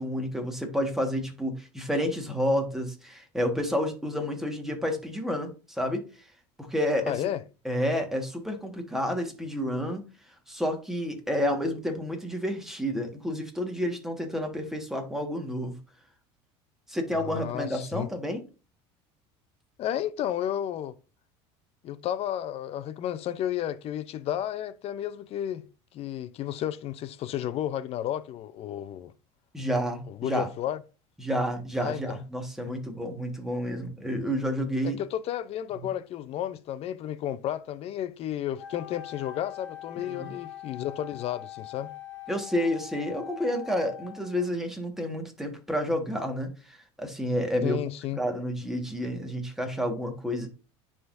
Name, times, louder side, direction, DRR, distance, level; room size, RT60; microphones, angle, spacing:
voice 1, 0.0-6.0 6.6-7.2 7.6-10.0 10.5-15.8 16.9-18.4 29.5-30.5 31.2-35.0 40.1-40.3 42.3-47.8 48.2-50.5, equal, 5° right, 1.5 m, -30 dB
voice 2, 7.1-7.4 17.2-18.1 19.8-20.9 21.8-25.6 25.9-29.1 30.1-30.8 31.8-32.2 34.8-41.9 47.6-48.2, left 11 dB, 50° left, 0.6 m, -32 dB
Wind instrument woodwind instrument, 38.6-44.5, left 11 dB, 80° left, 1.4 m, -43 dB
10.0 x 3.7 x 2.6 m
supercardioid pair, 110°, 14 cm